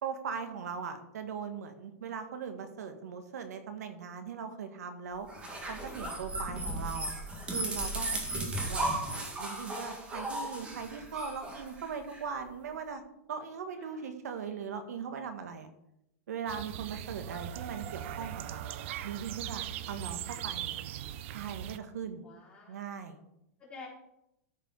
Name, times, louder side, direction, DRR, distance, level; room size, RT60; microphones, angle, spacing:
voice 1, 0.0-5.3 5.7-7.1 7.5-9.0 9.4-13.0 13.3-15.7 16.3-18.7 19.0-20.7 21.3-22.2 22.7-23.2, right 6 dB, 85° right, 7 dB, 1.7 m, -39 dB
sound 1, 5.3-12.2, right 1 dB, 15° right, 1.7 m, -36 dB
voice 2, 10.2-10.5 13.8-14.0 19.9-20.2 20.5-20.8 22.2-23.0 23.6-23.9, left 4 dB, 15° left, -4 dB, 3.4 m, -52 dB
sound 2, 16.5-21.8, right 11 dB, 50° right, 0.6 m, -39 dB
13.5 x 5.1 x 5.4 m, 0.83 s
supercardioid pair, 160°, 8 cm